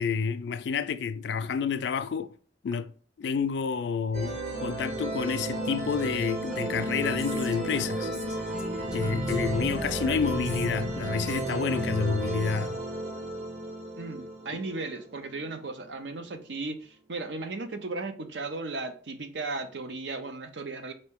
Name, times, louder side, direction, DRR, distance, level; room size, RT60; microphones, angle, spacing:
voice 1, 0.0-2.3 2.6-2.9 3.2-8.1 8.9-12.8 14.5-14.6, left 6 dB, 80° left, 0.3 m, -29 dB
sound 1, 4.1-15.5, right 1 dB, 40° right, 0.9 m, -33 dB
Female speech woman speaking, 6.5-11.9, equal, 5° right, 0.6 m, -45 dB
voice 2, 14.0-20.9, right 3 dB, 85° right, 0.6 m, -36 dB
4.3 x 2.6 x 3.5 m
head